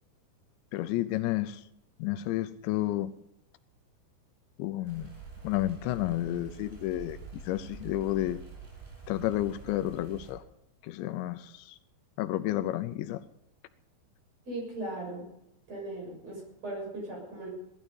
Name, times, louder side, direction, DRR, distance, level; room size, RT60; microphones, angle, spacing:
voice 1, 0.7-1.6 2.0-3.1 4.6-5.1 5.4-8.4 9.1-10.4 10.8-11.8 12.2-13.2, left 14 dB, 80° left, 2.9 m, -31 dB
sound 1, 4.8-10.3, right 5 dB, 55° right, 7.4 m, -46 dB
voice 2, 14.5-15.3 15.7-17.5, right 1 dB, 35° right, 7.5 m, -38 dB
18.0 x 12.5 x 5.5 m
omnidirectional pair, 5.3 m